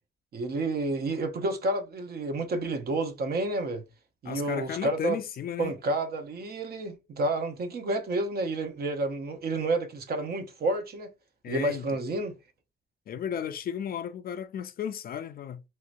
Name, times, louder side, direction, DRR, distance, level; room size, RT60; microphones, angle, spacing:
voice 1, 0.3-3.8 4.2-5.2 5.6-11.1 11.5-12.3, right 2 dB, 50° right, 0.8 m, -30 dB
voice 2, 4.2-5.7 11.4-11.8 13.1-15.6, left 8 dB, 50° left, 0.4 m, -34 dB
3.1 x 2.8 x 2.5 m
cardioid pair, 90°, 20 cm